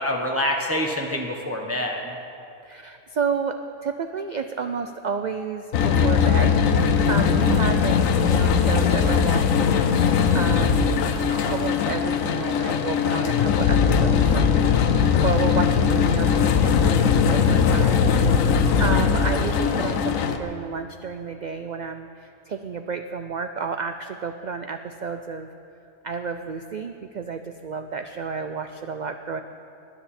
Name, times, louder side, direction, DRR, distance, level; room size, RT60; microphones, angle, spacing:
voice 1, 0.0-2.1, left 1 dB, 15° right, 1 dB, 0.8 m, -26 dB
voice 2, 2.6-3.6 3.8-11.0 11.3-18.1 18.8-25.5 26.0-29.4, right 5 dB, 85° right, 7 dB, 0.4 m, -31 dB
sound 1, 5.7-20.4, left 6 dB, 85° left, 1.1 m, -20 dB
20.0 x 10.0 x 4.3 m, 2.7 s
omnidirectional pair, 1.4 m